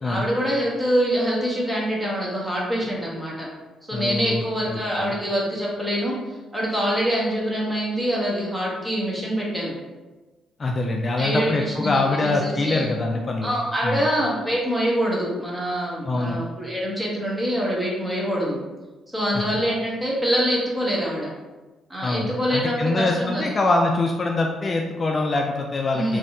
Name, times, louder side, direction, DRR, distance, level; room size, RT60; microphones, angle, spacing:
voice 1, 0.0-3.5 3.9-6.2 6.5-9.8 11.2-12.9 13.4-18.6 19.1-21.3 21.9-23.5 25.9-26.2, equal, 10° right, -4 dB, 1.0 m, -25 dB
voice 2, 3.9-5.2 10.6-13.5 13.8-14.0 16.0-16.4 19.5-19.6 22.0-26.2, left 2 dB, 35° left, 1 dB, 0.3 m, -24 dB
3.2 x 2.7 x 2.7 m, 1.2 s
cardioid pair, 90°, 0 cm